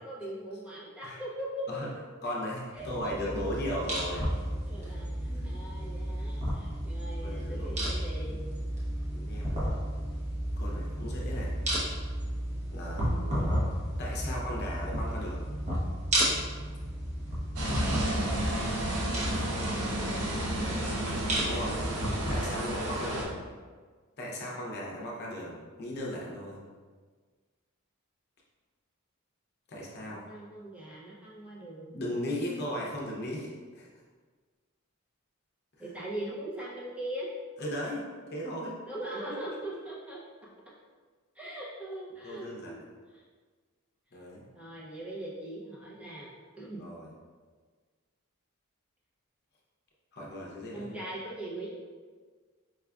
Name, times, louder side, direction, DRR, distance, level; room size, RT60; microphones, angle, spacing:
voice 1, 0.0-1.9 2.7-3.3 4.2-4.3 4.7-8.4 19.5-21.0 30.0-32.0 35.8-37.3 38.9-40.5 41.3-42.8 43.1-43.2 44.5-46.8 50.7-51.8, right 1 dB, 5° right, -7 dB, 0.5 m, -41 dB
voice 2, 2.2-4.3 4.8-4.9 5.3-5.5 7.2-8.1 9.1-9.7 10.6-11.5 12.7-13.4 14.0-15.5 19.4-19.5 21.4-21.8 22.3-23.4 24.2-26.6 29.7-30.2 31.9-33.9 35.8-35.9 37.6-38.1 38.3-38.8 39.3-39.4 42.2-42.7 44.1-44.5 46.7-47.1 50.1-50.9, equal, 50° left, -3 dB, 0.7 m, -37 dB
sound 1, 2.8-22.4, equal, 35° right, 0.8 m, -33 dB
sound 2, 17.6-23.3, right 1 dB, 75° right, 0.7 m, -31 dB
4.7 x 2.4 x 2.3 m, 1.5 s
head